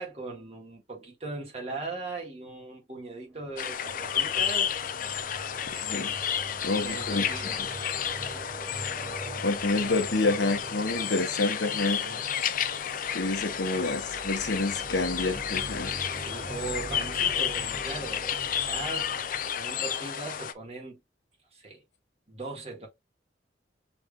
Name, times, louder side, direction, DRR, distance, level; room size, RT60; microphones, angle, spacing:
voice 1, 0.0-4.7 5.0-5.5 6.7-7.6 7.9-8.0 12.0-12.3 16.1-21.0 21.5-21.8 22.3-22.9, right 3 dB, 35° right, 1.8 m, -39 dB
sound 1, 3.3-20.3, right 1 dB, 5° left, 1.9 m, -43 dB
sound 2, 3.6-20.5, left 9 dB, 50° left, 0.4 m, -31 dB
voice 2, 5.7-6.1 6.6-7.2 9.4-12.1 13.1-15.9, left 2 dB, 75° left, 1.1 m, -28 dB
6.2 x 3.4 x 2.4 m
head